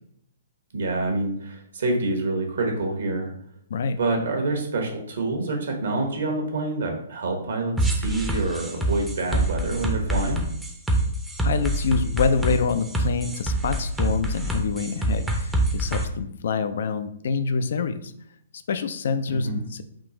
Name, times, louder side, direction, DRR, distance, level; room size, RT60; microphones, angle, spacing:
voice 1, 0.7-3.3 4.0-10.4 19.3-19.6, right 2 dB, 65° right, 2 dB, 0.9 m, -27 dB
sound 1, 7.8-16.0, right 1 dB, 5° right, 0.5 m, -25 dB
voice 2, 11.4-18.1 18.7-19.8, left 5 dB, 60° left, 11 dB, 0.3 m, -26 dB
3.6 x 2.4 x 3.9 m, 0.70 s
figure-of-eight pair, 125°, 0 cm